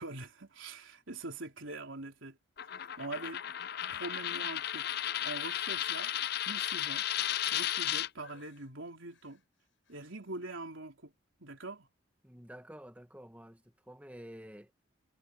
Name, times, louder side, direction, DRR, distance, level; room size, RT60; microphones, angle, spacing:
voice 1, 0.0-2.4 2.7-3.4 3.9-4.9 5.2-6.1 6.4-7.0 7.4-9.4 9.9-11.1 11.4-11.9, right 2 dB, 75° right, 3.7 m, -43 dB
Coin (dropping), 2.6-8.1, left 11 dB, 50° left, 0.5 m, -34 dB
sound 1, 4.1-4.5 5.4-7.8 8.2-8.7 9.1-9.4 9.8-10.1, left 5 dB, 65° left, 7.6 m, -62 dB
voice 2, 12.2-14.7, equal, 5° right, 1.6 m, -50 dB
head